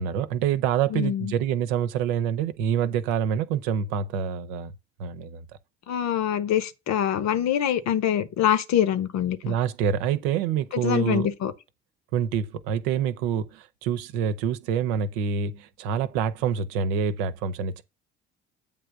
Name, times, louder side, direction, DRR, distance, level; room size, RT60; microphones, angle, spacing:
voice 1, 0.0-4.7 5.0-5.4 9.4-11.3 12.1-17.8, right 8 dB, 65° right, 0.9 m, -26 dB
voice 2, 0.9-1.3 5.9-9.5 10.7-11.5, left 10 dB, 50° left, 1.1 m, -24 dB
8.6 x 3.4 x 6.7 m
figure-of-eight pair, 55°, 35 cm